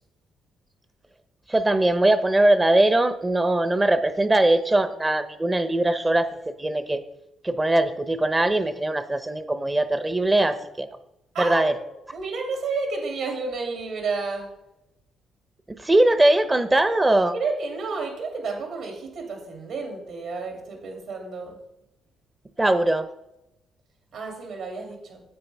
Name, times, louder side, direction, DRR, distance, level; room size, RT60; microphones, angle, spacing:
voice 1, 1.5-6.3 6.6-7.0 7.4-10.9 11.4-11.7 15.8-17.3 22.6-23.1, right 1 dB, 20° right, 11 dB, 0.6 m, -21 dB
voice 2, 11.3-14.5 17.3-21.6 24.1-25.2, right 4 dB, 75° right, 1 dB, 2.7 m, -31 dB
9.7 x 7.8 x 3.4 m, 0.86 s
cardioid pair, 90°, 0 cm